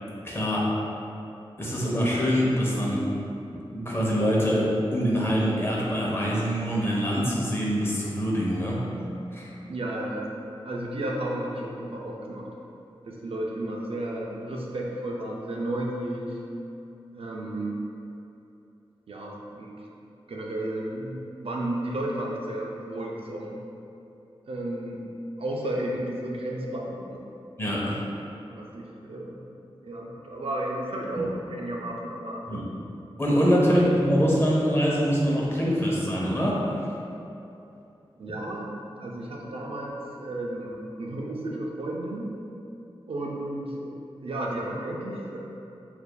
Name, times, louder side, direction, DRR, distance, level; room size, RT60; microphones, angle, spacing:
voice 1, 0.2-0.7 1.6-3.0 3.5-8.8 9.3-9.5 27.6-28.0 31.2-31.3 32.5-32.7 33.2-36.6, equal, 25° left, -5 dB, 0.8 m, -24 dB
voice 2, 9.7-12.5 13.1-16.4 17.1-17.8 19.1-19.7 20.3-23.6 24.4-25.1 25.4-27.2 28.5-29.4 29.8-32.6 33.7-33.9 38.2-42.4 43.1-43.9 44.2-45.4, right 1 dB, 70° right, -2 dB, 0.5 m, -33 dB
6.7 x 2.6 x 2.2 m, 2.8 s
wide cardioid pair, 95°, 10 cm